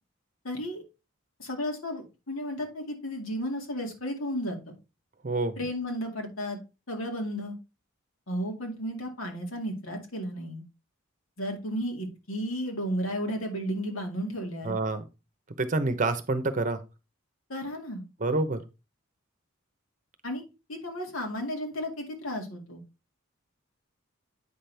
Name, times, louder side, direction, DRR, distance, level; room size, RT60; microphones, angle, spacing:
voice 1, 0.4-0.8 1.4-4.7 5.6-6.6 6.9-7.6 8.3-10.6 11.4-14.8 17.5-18.0 20.2-20.4 20.7-22.8, equal, 85° left, 2 dB, 2.2 m, -33 dB
voice 2, 5.2-5.5 14.6-15.0 15.6-16.8 18.2-18.6, right 2 dB, 40° right, 11 dB, 0.8 m, -27 dB
8.4 x 5.9 x 3.4 m, 0.27 s
head